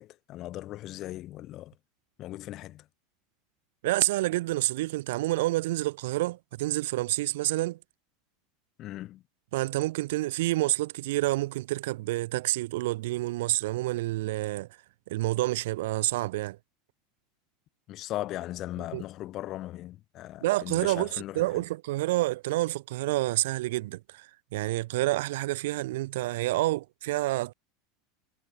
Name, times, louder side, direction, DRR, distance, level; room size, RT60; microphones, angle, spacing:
voice 1, 0.0-1.7 2.2-2.9 8.8-9.2 17.9-21.5, left 15 dB, 50° left, 3.7 m, -38 dB
voice 2, 3.8-7.8 9.5-14.7 15.1-16.6 18.9-19.0 20.4-27.5, right 18 dB, 70° right, 0.9 m, -28 dB
hypercardioid pair, 95°, 0 cm